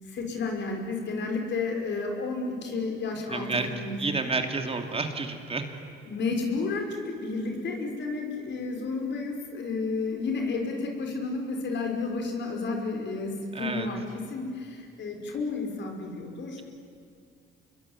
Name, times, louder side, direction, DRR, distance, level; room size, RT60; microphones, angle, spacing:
voice 1, 0.1-4.0 6.1-14.0 14.3-16.6, left 3 dB, 65° left, 2 dB, 5.5 m, -31 dB
voice 2, 3.3-3.7 4.0-5.6 13.5-13.9, right 3 dB, 30° right, 5 dB, 2.7 m, -30 dB
27.5 x 22.5 x 9.8 m, 2.3 s
cardioid pair, 90°, 20 cm